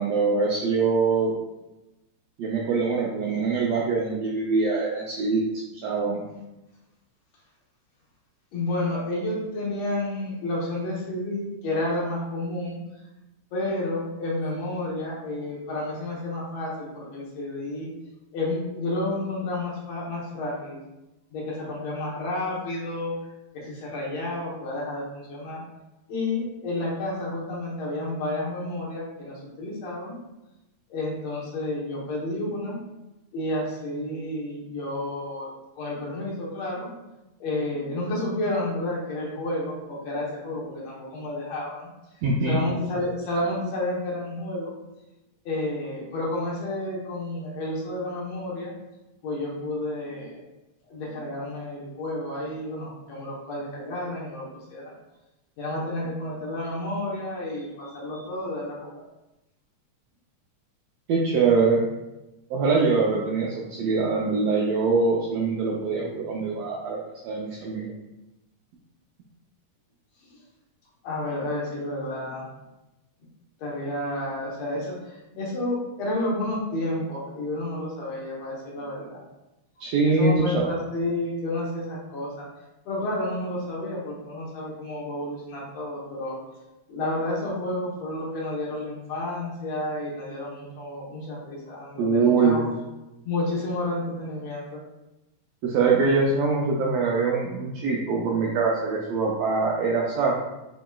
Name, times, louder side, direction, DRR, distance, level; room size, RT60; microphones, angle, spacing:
voice 1, 0.0-1.3 2.4-6.2 42.2-42.6 61.1-61.8 62.5-67.0 67.2-67.9 79.8-80.7 92.0-92.7 95.6-100.4, right 4 dB, 80° right, -2 dB, 1.5 m, -23 dB
voice 2, 8.5-12.8 13.5-17.9 18.3-20.8 21.3-23.1 23.5-25.6 26.1-30.2 30.9-32.8 33.3-36.9 37.4-41.9 42.5-44.8 45.5-48.7 49.2-50.4 50.8-54.4 54.7-55.0 55.6-59.0 71.0-72.5 73.6-79.2 80.0-82.5 82.9-86.4 86.9-92.6 93.2-94.8, left 1 dB, 65° left, -5 dB, 2.0 m, -30 dB
7.4 x 2.9 x 2.3 m, 0.97 s
omnidirectional pair, 3.4 m